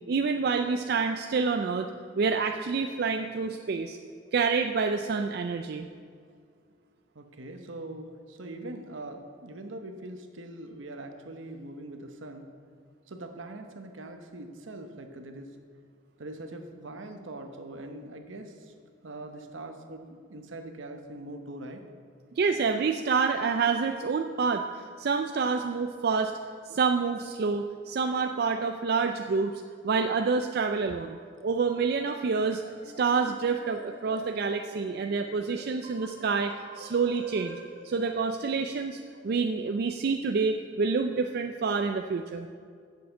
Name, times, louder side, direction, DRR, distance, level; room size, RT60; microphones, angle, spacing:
voice 1, 0.1-1.9 2.2-4.0 4.3-5.9 22.4-26.3 26.7-31.2 31.4-32.6 33.0-37.6 37.8-42.5, right 5 dB, 50° right, 5 dB, 0.4 m, -28 dB
voice 2, 7.1-12.5 13.1-15.6 16.2-18.7 19.0-21.8, right 2 dB, 75° right, 6 dB, 1.0 m, -42 dB
sound 1, 31.7-38.2, equal, 65° left, 1.2 m, -48 dB
8.3 x 6.5 x 7.7 m, 2.2 s
head